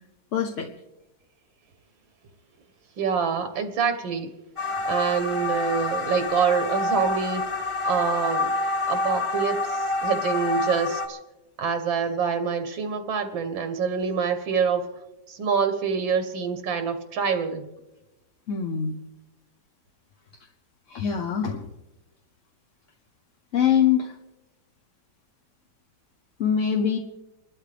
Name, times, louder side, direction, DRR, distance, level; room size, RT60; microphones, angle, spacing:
voice 1, 0.3-0.7 18.5-19.0 20.9-21.7 23.5-24.2 26.4-27.0, left 8 dB, 55° left, 3 dB, 1.0 m, -23 dB
voice 2, 3.0-4.3 4.9-8.5 8.9-11.2 11.6-14.8 15.3-17.7, right 6 dB, 85° right, 8 dB, 1.8 m, -26 dB
sound 1, 4.6-11.1, left 2 dB, 25° left, 0.8 m, -27 dB
29.0 x 12.5 x 3.4 m, 1.0 s
omnidirectional pair, 2.1 m